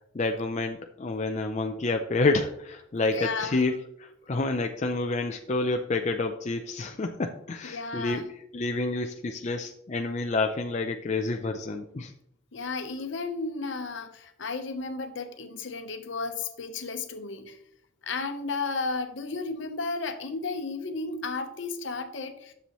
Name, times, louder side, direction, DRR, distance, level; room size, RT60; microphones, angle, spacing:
voice 1, 0.1-8.3 8.5-12.1, left 3 dB, 35° left, 4 dB, 0.4 m, -29 dB
voice 2, 3.0-3.7 7.6-8.3 12.5-17.6 18.0-22.5, left 3 dB, 65° left, 7 dB, 0.9 m, -33 dB
9.9 x 6.9 x 3.0 m, 0.75 s
head